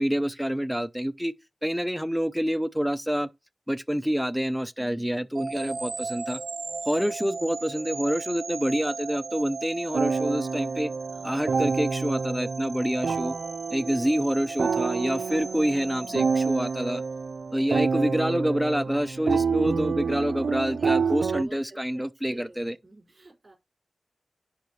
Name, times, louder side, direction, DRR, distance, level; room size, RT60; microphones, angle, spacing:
voice 1, 0.0-1.3 1.6-3.3 3.7-6.4 6.9-10.9 11.2-13.3 13.7-17.0 17.5-22.8, equal, ahead, 0.5 m, -27 dB
voice 2, 4.8-5.9 11.0-11.4 15.3-16.4 20.7-23.5, right 2 dB, 40° right, 4.8 m, -52 dB
sound 1, 5.3-17.5, right 4 dB, 60° right, 1.0 m, -37 dB
sound 2, 9.9-21.4, right 5 dB, 90° right, 0.4 m, -28 dB
10.5 x 4.6 x 3.1 m
wide cardioid pair, 80°, 0 cm